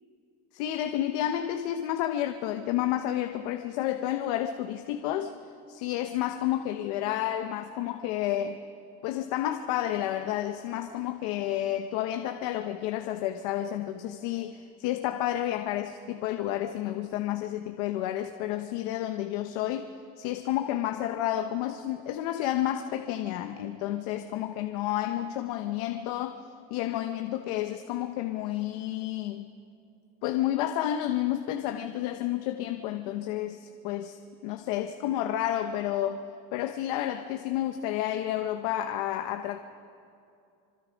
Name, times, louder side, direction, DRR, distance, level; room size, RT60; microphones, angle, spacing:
voice 1, 0.5-5.3 5.7-8.6 9.0-26.4 26.7-29.5 30.2-34.2 34.4-36.2 36.5-39.6, left 12 dB, 85° left, 7 dB, 1.0 m, -30 dB
26.0 x 26.0 x 5.2 m, 2.5 s
cardioid pair, 160°, 19 cm